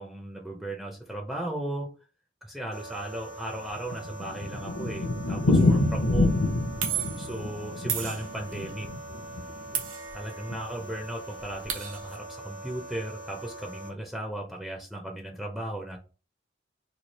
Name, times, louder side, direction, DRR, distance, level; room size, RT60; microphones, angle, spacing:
voice 1, 0.0-1.9 2.4-6.4 7.2-8.9 10.1-16.0, right 1 dB, ahead, 0 dB, 0.5 m, -36 dB
sound 1, 2.7-13.9, right 2 dB, 80° left, 1.1 m, -43 dB
Thunder, 3.6-9.8 10.1-10.2 10.5-10.6 10.8-10.9 11.5-11.8, left 2 dB, 65° left, 0.7 m, -27 dB
sound 2, 5.6-5.8 6.8-7.4 7.9-8.7 9.7-10.6 10.9-11.0 11.3-12.2, right 8 dB, 85° right, 0.7 m, -34 dB
3.1 x 2.3 x 4.0 m, 0.35 s
head